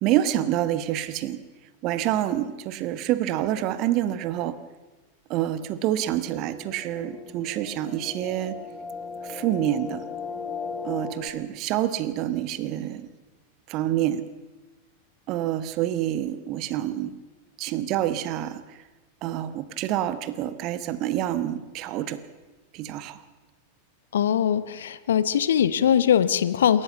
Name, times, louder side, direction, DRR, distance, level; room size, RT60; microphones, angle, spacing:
voice 1, 0.0-1.4 1.8-4.6 5.3-8.6 9.2-10.0 10.8-13.1 13.7-14.2 15.3-17.1 17.6-18.8 19.2-22.2 22.7-23.2, right 12 dB, 40° right, 14 dB, 1.3 m, -27 dB
sound 1, 6.1-11.3, left 5 dB, 15° left, 2.0 m, -37 dB
voice 2, 24.1-26.8, left 9 dB, 65° left, 15 dB, 1.0 m, -21 dB
27.0 x 14.0 x 6.9 m, 1.2 s
figure-of-eight pair, 90°, 0 cm